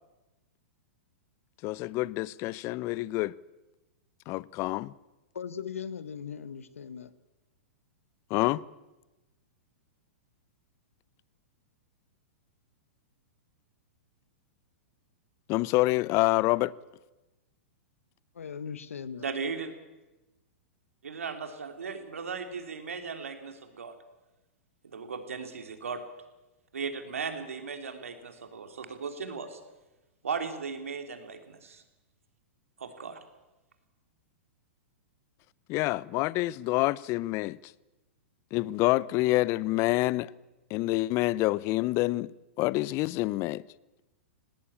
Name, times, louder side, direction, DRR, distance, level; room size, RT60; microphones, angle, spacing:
voice 1, 1.6-3.3 4.3-4.9 8.3-8.6 15.5-16.7 35.7-37.6 38.5-40.3 40.7-43.6, left 19 dB, 40° left, 0.6 m, -27 dB
voice 2, 5.3-7.1 18.3-19.3, left 7 dB, 85° left, 1.1 m, -39 dB
voice 3, 19.2-19.7 21.0-23.9 24.8-26.0 26.7-29.6 30.2-31.8 32.8-33.2, right 5 dB, 85° right, 3.0 m, -37 dB
18.0 x 18.0 x 8.7 m
hypercardioid pair, 120°, 7 cm